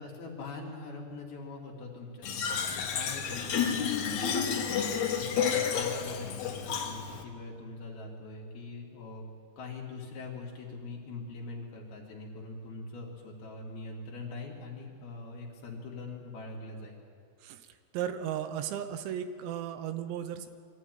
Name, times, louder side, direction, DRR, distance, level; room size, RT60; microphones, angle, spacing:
voice 1, 0.0-9.3 9.6-17.0, left 3 dB, 55° left, -2 dB, 4.0 m, -43 dB
Fill (with liquid), 2.2-7.2, left 7 dB, 85° left, 1.7 m, -31 dB
voice 2, 17.9-20.5, right 9 dB, 85° right, 9 dB, 3.8 m, -35 dB
24.0 x 14.5 x 9.4 m, 2.2 s
omnidirectional pair, 6.0 m